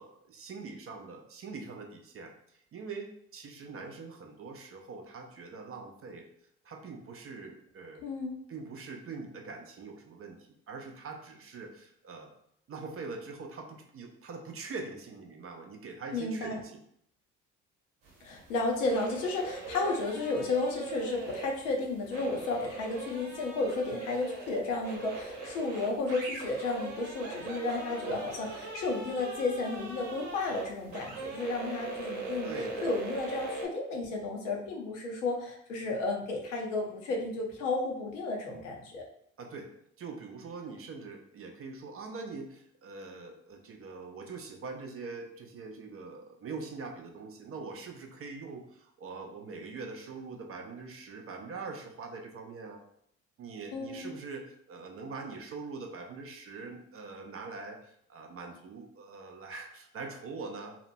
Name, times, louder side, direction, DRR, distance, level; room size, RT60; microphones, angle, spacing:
voice 1, 0.0-2.3 2.7-6.3 6.6-8.1 8.5-10.4 10.7-12.3 12.7-16.7 32.4-32.9 39.4-39.7 40.0-52.8 53.4-60.8, right 4 dB, 40° right, 3 dB, 0.5 m, -43 dB
voice 2, 8.0-8.4 16.1-16.6 18.2-32.5 32.8-39.0 53.7-54.2, left 3 dB, 80° left, 0 dB, 0.6 m, -33 dB
sound 1, 18.0-33.7, right 3 dB, 70° right, 0.8 m, -40 dB
2.8 x 2.0 x 2.6 m, 0.69 s
hypercardioid pair, 55°, 36 cm